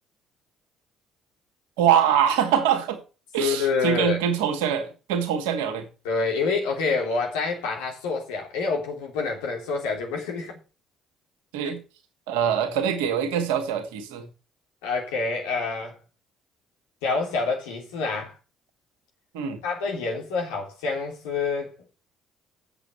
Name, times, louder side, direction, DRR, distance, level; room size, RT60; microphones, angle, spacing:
voice 1, 1.8-3.0 3.3-5.9 11.5-11.8 12.3-14.3 19.3-19.6, right 8 dB, 70° right, 2.0 m, -24 dB
voice 2, 3.4-4.2 6.0-10.6 14.8-16.0 17.0-18.3 19.6-21.7, left 4 dB, 70° left, 3.5 m, -27 dB
8.1 x 7.6 x 6.8 m
figure-of-eight pair, 50°, 0 cm